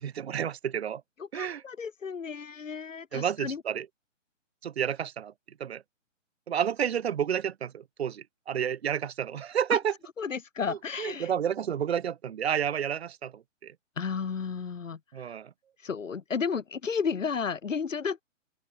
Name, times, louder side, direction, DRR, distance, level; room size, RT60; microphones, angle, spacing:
voice 1, 0.0-1.0 1.3-1.6 3.1-3.9 4.6-5.3 5.6-5.8 6.5-9.9 10.7-13.7 15.1-15.5, right 8 dB, 55° right, 2.4 m, -30 dB
voice 2, 1.2-3.6 9.7-9.8 10.2-11.3 14.0-15.3 15.8-18.2, left 6 dB, 75° left, 2.5 m, -33 dB
open air
hypercardioid pair, 145°, 39 cm